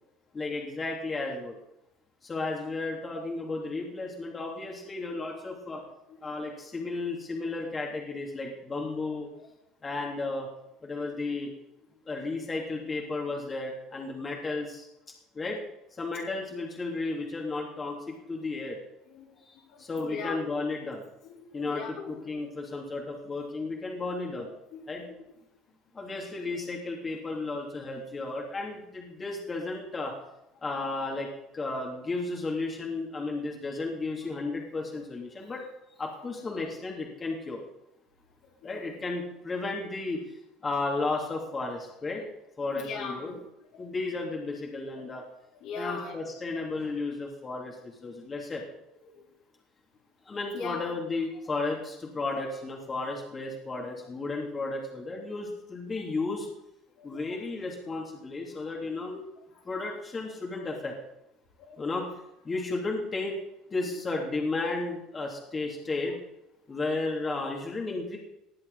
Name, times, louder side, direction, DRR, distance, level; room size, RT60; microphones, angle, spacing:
voice 1, 0.3-1.5 2.2-5.8 6.2-9.3 9.8-10.5 10.8-11.5 12.1-14.9 15.3-15.6 16.0-18.8 19.5-21.0 21.5-24.5 24.9-25.1 25.9-30.1 30.6-35.7 36.0-37.6 38.6-40.2 40.6-42.2 42.6-43.3 43.8-45.2 45.8-48.6 50.2-56.5 57.0-59.2 59.7-60.9 61.8-62.1 62.4-63.4 63.7-66.2 66.7-68.2, left 3 dB, 25° left, -1 dB, 3.0 m, -33 dB
voice 2, 19.0-20.5 21.2-22.5 24.5-25.4 26.5-26.7 27.3-27.4 30.1-30.2 38.2-38.9 42.7-43.9 44.9-45.1 45.5-46.1 49.0-49.4 50.5-51.0 52.3-52.6 52.9-53.0 55.8-55.9 56.9-57.8 58.4-59.7 60.3-60.5 61.6-61.9 62.5-62.6 63.8-64.0 66.0-66.1, left 5 dB, 65° left, -3 dB, 4.3 m, -43 dB
20.0 x 7.7 x 4.1 m, 0.89 s
hypercardioid pair, 70°, 0 cm